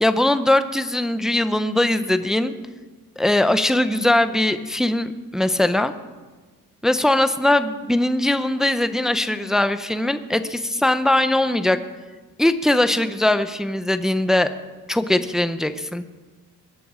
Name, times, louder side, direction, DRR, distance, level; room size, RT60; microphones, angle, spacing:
voice 1, 0.0-2.5 3.2-5.9 6.8-11.8 12.4-14.5 14.9-16.0, left 1 dB, ahead, 11 dB, 0.5 m, -20 dB
21.5 x 11.0 x 4.9 m, 1.3 s
wide cardioid pair, 165°, 35 cm